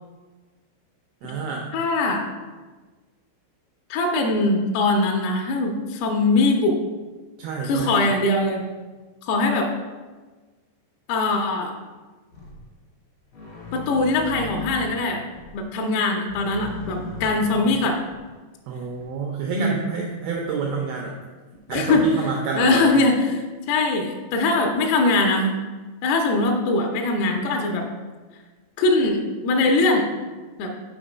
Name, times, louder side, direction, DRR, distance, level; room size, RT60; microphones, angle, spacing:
voice 1, 1.2-1.7 7.4-8.0 18.7-21.2 21.7-22.9, right 5 dB, 90° right, 0 dB, 2.1 m, -28 dB
voice 2, 1.7-2.3 3.9-6.8 7.6-8.7 9.2-9.7 11.1-11.7 13.7-15.2 15.5-18.0 19.5-19.8 21.7-22.0 22.6-25.6 26.0-27.9 28.8-30.1 30.6-30.7, left 2 dB, 80° left, 2 dB, 2.4 m, -21 dB
sound 1, 12.3-12.6 13.3-15.0 15.3-15.6 16.3-18.2 19.0-19.1, left 3 dB, 65° left, 1.2 m, -37 dB
6.3 x 4.3 x 4.9 m, 1.3 s
omnidirectional pair, 5.1 m